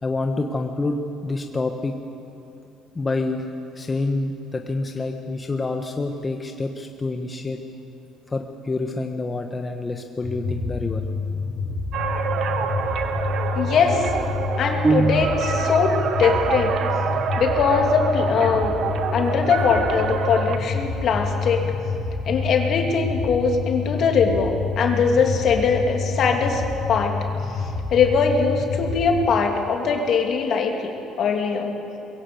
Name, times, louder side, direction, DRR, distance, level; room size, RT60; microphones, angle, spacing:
voice 1, 0.0-1.9 2.9-3.5 3.7-7.6 8.3-11.0, left 3 dB, 25° left, 4 dB, 1.3 m, -27 dB
sound 1, 10.2-29.3, left 4 dB, 80° left, 4.8 m, -28 dB
sound 2, 11.9-20.6, right 7 dB, 60° right, 1.4 m, -27 dB
voice 2, 13.5-14.1 14.6-16.7 17.4-18.7 19.1-21.7 22.3-26.6 26.9-27.2 27.5-30.9 31.2-31.7, left 5 dB, 60° left, 2 dB, 2.9 m, -21 dB
sound 3, 14.8-15.9, right 4 dB, 25° right, 0.8 m, -22 dB
22.0 x 16.5 x 7.9 m, 2.8 s
supercardioid pair, 85°, 0 cm